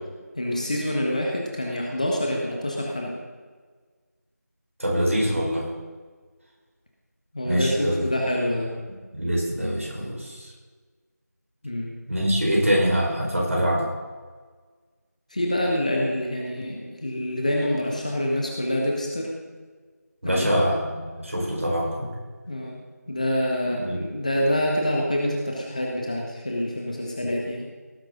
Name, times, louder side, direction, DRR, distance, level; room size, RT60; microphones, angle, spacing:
voice 1, 0.3-3.2 7.3-8.8 11.6-11.9 15.3-19.3 20.2-20.6 22.5-22.8 23.1-27.7, left 1 dB, 25° left, -1 dB, 1.4 m, -26 dB
voice 2, 4.8-5.7 7.4-8.1 9.2-10.5 12.1-13.9 20.2-22.1 23.8-24.0, equal, 50° right, -2 dB, 4.9 m, -24 dB
18.0 x 10.5 x 3.9 m, 1.4 s
figure-of-eight pair, 175°, 9 cm